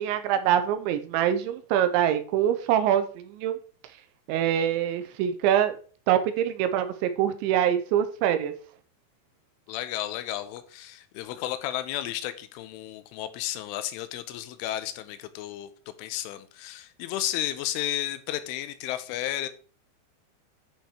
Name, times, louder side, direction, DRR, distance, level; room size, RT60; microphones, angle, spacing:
voice 1, 0.0-3.6 4.3-5.8 6.1-8.5, right 10 dB, 80° right, 9 dB, 2.8 m, -24 dB
voice 2, 9.7-15.7 16.0-19.5, left 13 dB, 85° left, 12 dB, 3.2 m, -33 dB
10.0 x 5.7 x 4.3 m, 0.41 s
omnidirectional pair, 5.6 m